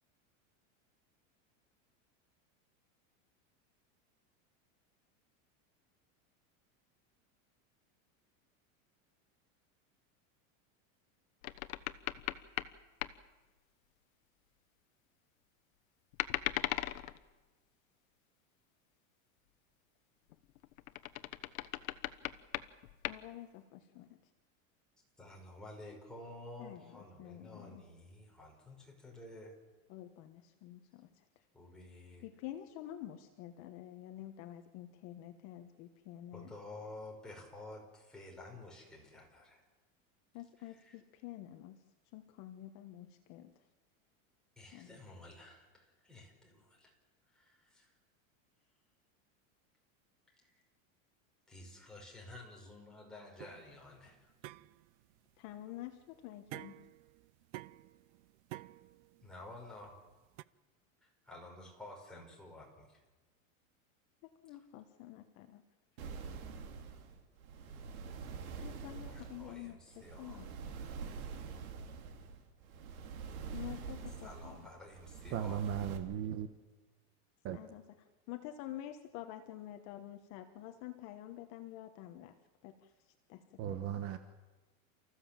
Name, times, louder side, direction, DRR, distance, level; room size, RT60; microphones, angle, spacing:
sound 1, 11.4-12.8 13.0-13.2 16.1-17.2 20.3-23.2, left 15 dB, 80° left, 1.2 m, -38 dB
voice 1, 23.0-24.2 26.6-27.8 29.9-31.1 32.2-36.5 40.3-41.8 42.1-43.5 44.7-44.9 55.4-56.8 64.4-65.6 68.6-70.5 73.5-74.6 77.5-77.8 78.3-82.3 82.6-82.7 83.3-83.4 83.7-83.9, left 13 dB, 40° left, 7 dB, 1.3 m, -48 dB
voice 2, 25.2-29.5 31.5-32.2 36.3-39.6 40.6-41.0 44.5-46.9 47.3-47.9 50.4-50.5 51.5-54.3 59.2-60.0 61.0-63.0 69.0-70.5 73.5-73.7 74.2-75.6, left 2 dB, ahead, -2 dB, 5.1 m, -52 dB
sound 2, 53.4-60.4, right 17 dB, 55° right, 0.7 m, -51 dB
sound 3, 66.0-76.0, right 5 dB, 90° right, 3.3 m, -46 dB
voice 3, 75.3-76.5 77.4-77.6 83.6-84.2, right 9 dB, 35° right, 9 dB, 1.2 m, -37 dB
29.5 x 15.0 x 7.5 m, 1.2 s
supercardioid pair, 165°, 41 cm